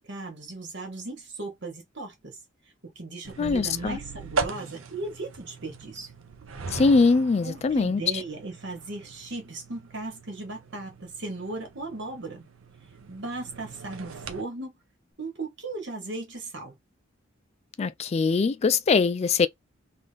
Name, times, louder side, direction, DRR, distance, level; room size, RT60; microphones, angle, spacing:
voice 1, 0.1-2.4 2.9-6.1 7.4-12.4 13.1-14.7 15.2-16.7, right 2 dB, 60° right, 1.6 m, -37 dB
sound 1, 3.2-14.4, right 4 dB, 80° right, 0.6 m, -39 dB
voice 2, 3.4-4.0 6.7-8.2 17.8-19.5, left 4 dB, 30° left, 0.3 m, -22 dB
3.5 x 2.5 x 3.4 m
head